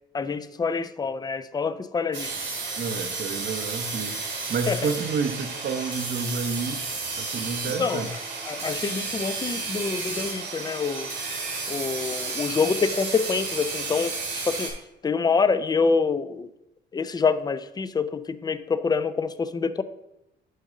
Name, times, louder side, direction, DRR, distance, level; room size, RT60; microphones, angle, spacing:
voice 1, 0.1-2.5 4.7-4.9 7.7-8.2 8.5-11.1 11.7-14.2 14.4-14.7 15.0-16.5 16.9-19.8, left 5 dB, 20° left, 13 dB, 0.4 m, -26 dB
sound 1, 2.1-14.7, right 4 dB, 90° right, 2.4 m, -32 dB
voice 2, 2.8-4.2 4.5-6.8 7.2-8.1, right 4 dB, 55° right, 7 dB, 0.8 m, -29 dB
6.5 x 5.2 x 5.0 m, 0.89 s
cardioid pair, 90°, 20 cm